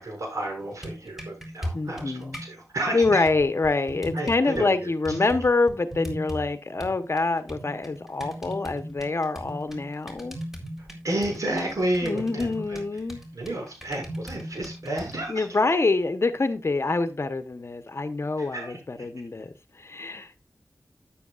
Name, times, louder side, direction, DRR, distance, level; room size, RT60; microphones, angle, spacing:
voice 1, 0.0-3.2 4.1-5.2 10.8-12.8 13.3-15.6 18.4-18.8, right 1 dB, 80° right, 6.6 m, -31 dB
sound 1, 0.6-2.5 3.0-4.6 5.0-6.5 6.8-15.3, equal, 5° right, 4.0 m, -38 dB
voice 2, 1.7-2.4 2.9-10.4 12.0-13.2 15.3-20.4, left 3 dB, 50° left, 1.1 m, -26 dB
13.0 x 10.5 x 2.5 m
wide cardioid pair, 70°, 6 cm